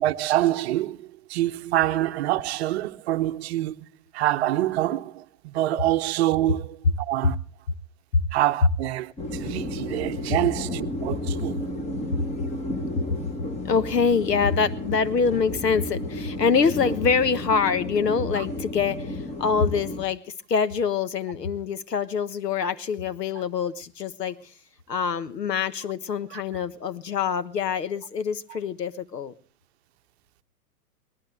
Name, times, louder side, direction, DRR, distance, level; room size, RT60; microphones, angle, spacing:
voice 1, 0.0-3.9 4.1-7.4 8.3-11.6 18.3-18.4 26.3-26.4 28.5-28.6, right 14 dB, 40° right, 0.8 m, -26 dB
sound 1, 9.2-20.1, left 1 dB, 15° left, 1.3 m, -32 dB
voice 2, 13.6-20.2 20.5-24.4 24.9-29.3, left 5 dB, 80° left, 1.2 m, -25 dB
23.5 x 19.0 x 3.3 m
figure-of-eight pair, 110°, 48 cm